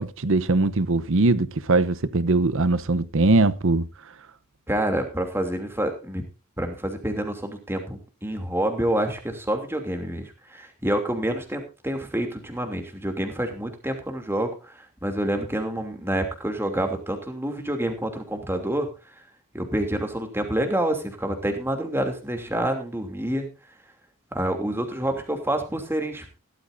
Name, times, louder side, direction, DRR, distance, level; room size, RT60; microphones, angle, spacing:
voice 1, 0.0-3.9, right 2 dB, 65° right, 0.9 m, -21 dB
voice 2, 4.7-6.2 6.6-18.9 19.5-23.5 24.3-26.4, right 1 dB, 10° right, 2.8 m, -28 dB
17.0 x 12.5 x 2.6 m
head